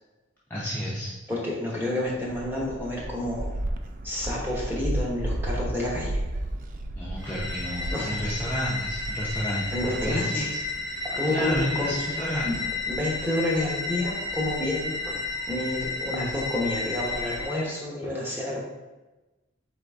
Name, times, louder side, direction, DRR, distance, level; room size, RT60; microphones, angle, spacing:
voice 1, 0.5-1.1 7.0-12.5, equal, 10° left, -8 dB, 0.5 m, -31 dB
voice 2, 1.3-3.5 4.0-6.2 7.9-8.3 9.7-10.5 11.1-11.9 12.4-12.5 12.9-15.2 15.5-18.6, left 1 dB, 10° right, -4 dB, 0.9 m, -29 dB
Gull seagull, 2.0-17.5, right 1 dB, 40° right, 0.3 m, -36 dB
sound 1, 7.2-17.7, left 3 dB, 80° right, 1.0 m, -33 dB
4.0 x 3.9 x 3.4 m, 1.1 s
head